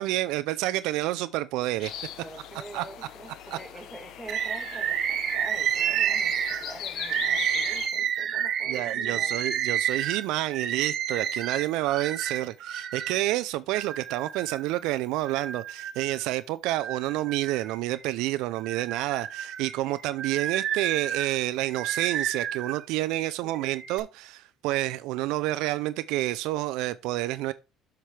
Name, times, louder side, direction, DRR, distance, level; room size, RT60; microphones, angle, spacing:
voice 1, 0.0-1.9 2.7-2.8 3.5-3.6 8.7-27.5, right 16 dB, 80° right, 0.4 m, -29 dB
sound 1, 1.8-7.9, left 9 dB, 60° left, 0.9 m, -40 dB
voice 2, 2.2-9.4 23.4-23.8, right 2 dB, 5° right, 1.7 m, -45 dB
Bird, 4.3-13.2 13.7-14.7 15.3-16.3 16.7-18.1 18.6-22.8 23.5-24.0, right 9 dB, 50° right, 0.9 m, -30 dB
7.4 x 5.9 x 3.3 m
cardioid pair, 120°, 0 cm